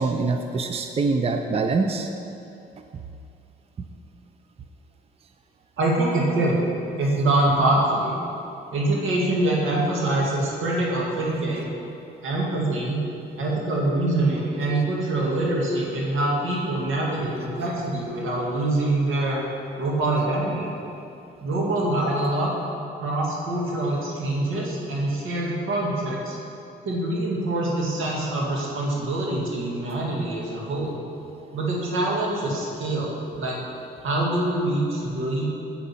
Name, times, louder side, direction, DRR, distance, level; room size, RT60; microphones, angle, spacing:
voice 1, 0.0-2.1 3.8-3.9, right 3 dB, 30° right, 6 dB, 0.6 m, -24 dB
voice 2, 5.8-6.6 7.0-8.2 8.7-11.7 12.2-13.0 13.4-19.4 19.8-20.7 21.4-22.5 23.0-26.4 26.8-31.0 31.5-33.6 34.0-35.5, right 2 dB, 85° right, -3 dB, 2.2 m, -24 dB
9.0 x 7.5 x 5.7 m, 2.7 s
cardioid pair, 90°, 20 cm